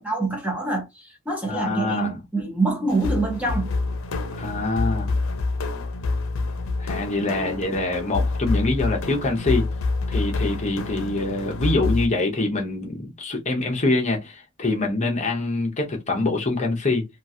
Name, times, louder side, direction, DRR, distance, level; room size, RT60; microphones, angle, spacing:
voice 1, 0.0-3.7 7.4-7.6, right 3 dB, 5° right, 0.7 m, -26 dB
voice 2, 1.5-2.2 4.4-5.2 6.8-9.7 10.1-17.1, left 2 dB, 35° left, 0.8 m, -25 dB
sound 1, 2.9-12.1, left 3 dB, 70° left, 0.6 m, -27 dB
3.0 x 2.4 x 2.6 m
head